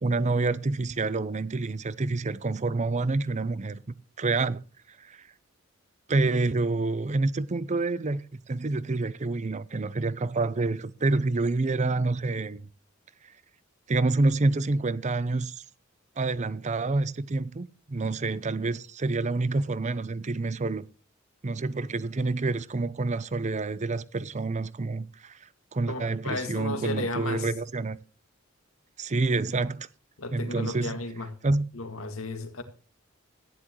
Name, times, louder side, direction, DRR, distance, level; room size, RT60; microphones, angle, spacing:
voice 1, 0.0-3.8 4.2-4.6 4.9-5.3 6.1-12.7 13.9-15.6 16.2-20.9 21.4-28.0 29.0-29.9 30.3-31.0 31.4-31.7, right 3 dB, 35° right, 0.6 m, -28 dB
voice 2, 25.9-27.5 30.2-31.3 31.7-32.6, left 2 dB, 90° left, 2.1 m, -34 dB
15.0 x 10.0 x 3.1 m
head